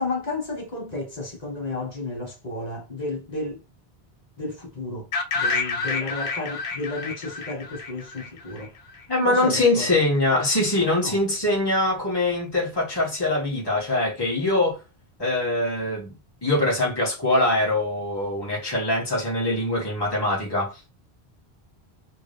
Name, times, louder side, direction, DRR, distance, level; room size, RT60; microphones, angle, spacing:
voice 1, 0.0-3.6 4.4-5.1 5.3-8.7 9.2-9.9 11.0-11.2, left 2 dB, 40° left, 1.4 m, -32 dB
sound 1, 5.1-9.0, left 4 dB, 85° left, 1.0 m, -29 dB
voice 2, 9.1-14.8 15.2-16.1 16.4-20.8, left 2 dB, 25° left, 1.8 m, -23 dB
3.6 x 2.7 x 3.3 m
omnidirectional pair, 1.1 m